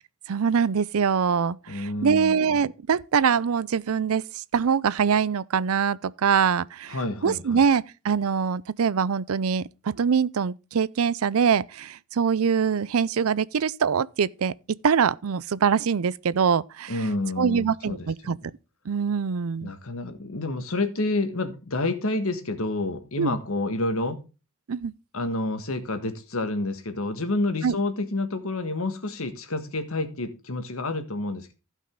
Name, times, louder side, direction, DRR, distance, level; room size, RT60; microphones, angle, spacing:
voice 1, 0.3-7.0 7.2-14.5 14.8-16.9 17.4-18.4 18.9-19.7 23.2-23.3 24.7-24.9 27.6-27.8, right 6 dB, 75° right, 0.5 m, -23 dB
voice 2, 1.7-2.6 6.9-7.6 16.9-18.1 19.6-24.2 25.1-31.5, left 2 dB, 75° left, 1.6 m, -29 dB
15.5 x 5.5 x 3.7 m
head